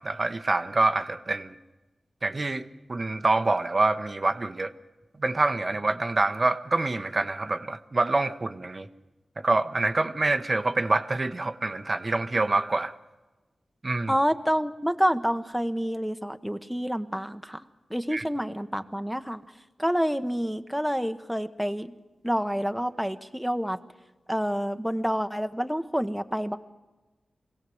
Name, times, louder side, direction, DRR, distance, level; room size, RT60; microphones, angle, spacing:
voice 1, 0.0-1.5 2.2-4.7 5.2-8.9 9.4-12.9 13.8-14.1 18.1-18.2, right 2 dB, 40° right, 9 dB, 0.8 m, -26 dB
voice 2, 14.1-19.4 19.8-21.9 22.2-23.8 24.3-26.6, equal, ahead, 7 dB, 1.0 m, -28 dB
23.0 x 16.5 x 7.8 m, 1.2 s
cardioid pair, 60°, 0 cm